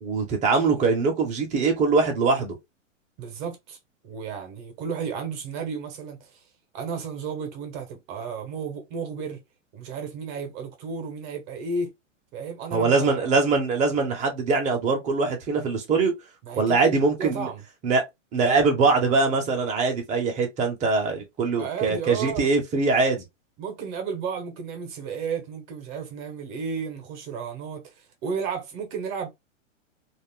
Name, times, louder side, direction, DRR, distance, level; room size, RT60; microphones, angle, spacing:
voice 1, 0.0-2.5 12.7-16.1 16.6-17.5 17.8-18.0 18.3-23.2, right 4 dB, 20° right, 0.8 m, -22 dB
voice 2, 3.2-3.8 4.0-6.5 6.7-9.4 9.7-11.9 12.3-13.3 16.4-17.6 21.6-22.5 23.6-29.3, right 5 dB, 40° right, 0.9 m, -33 dB
2.5 x 2.0 x 3.5 m
hypercardioid pair, 140°, 38 cm